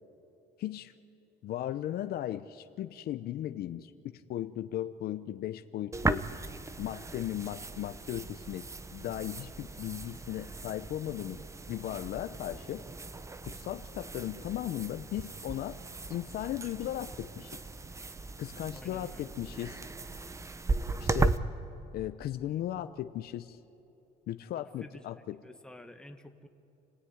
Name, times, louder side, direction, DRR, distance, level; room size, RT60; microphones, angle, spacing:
voice 1, 0.6-0.9 1.4-6.3 6.8-8.7 8.9-12.8 13.4-15.8 16.1-17.6 18.4-19.8 21.0-21.4 21.9-23.6 24.3-25.4, left 12 dB, 65° left, 10 dB, 0.7 m, -37 dB
sound 1, 5.9-21.4, right 3 dB, 15° right, 0.7 m, -37 dB
voice 2, 18.7-19.3 24.5-25.1 25.4-26.5, left 1 dB, 5° left, 5 dB, 1.5 m, -50 dB
28.5 x 17.0 x 9.6 m, 2.9 s
cardioid pair, 110°, 17 cm